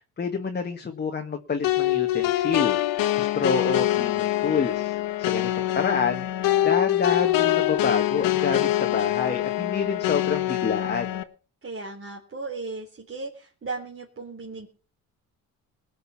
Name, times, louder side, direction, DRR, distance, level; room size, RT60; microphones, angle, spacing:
voice 1, 0.2-2.8 3.1-11.2, left 5 dB, 30° left, 3 dB, 1.7 m, -28 dB
sound 1, 1.6-11.2, left 14 dB, 75° left, 1.4 m, -24 dB
voice 2, 11.6-14.7, right 3 dB, 35° right, -2 dB, 3.5 m, -36 dB
19.5 x 6.6 x 7.2 m, 0.39 s
cardioid pair, 100°, 34 cm